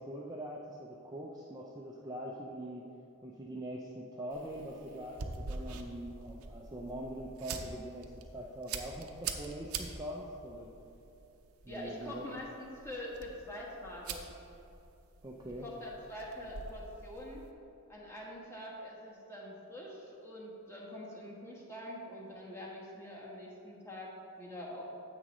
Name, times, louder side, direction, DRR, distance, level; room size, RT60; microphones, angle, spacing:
voice 1, 0.0-2.9 3.2-10.7 11.6-12.3 15.2-15.7, right 1 dB, 15° right, -3 dB, 0.4 m, -43 dB
sound 1, 4.3-17.5, right 5 dB, 75° right, 0.6 m, -45 dB
voice 2, 11.7-14.3 15.6-17.4 17.9-24.8, left 1 dB, 10° left, -4 dB, 1.3 m, -45 dB
10.0 x 7.5 x 3.0 m, 2.8 s
head